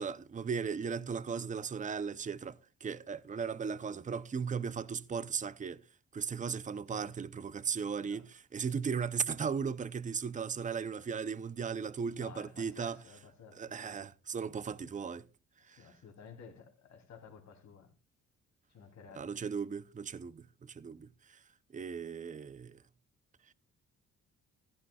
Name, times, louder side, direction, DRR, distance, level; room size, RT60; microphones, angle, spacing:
voice 1, 0.0-5.8 6.1-13.0 13.6-15.2 15.7-15.9 19.1-21.4 21.7-22.8, right 6 dB, 25° right, 0.7 m, -37 dB
voice 2, 7.9-8.3 12.1-13.8 15.6-17.9 18.7-19.4, left 6 dB, 65° left, 3.0 m, -54 dB
15.5 x 11.5 x 2.4 m
cardioid pair, 90°, 30 cm